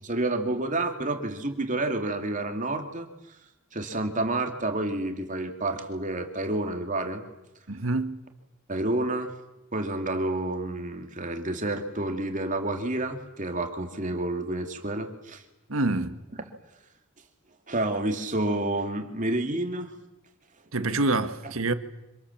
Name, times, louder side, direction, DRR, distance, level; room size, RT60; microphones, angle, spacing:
voice 1, 0.0-3.1 3.7-7.2 8.7-9.3 9.7-15.4 17.7-19.9, right 2 dB, 40° right, 2.9 m, -29 dB
voice 2, 7.7-8.2 15.7-16.2 20.7-21.7, right 2 dB, 80° right, 1.8 m, -26 dB
27.0 x 26.5 x 7.3 m
head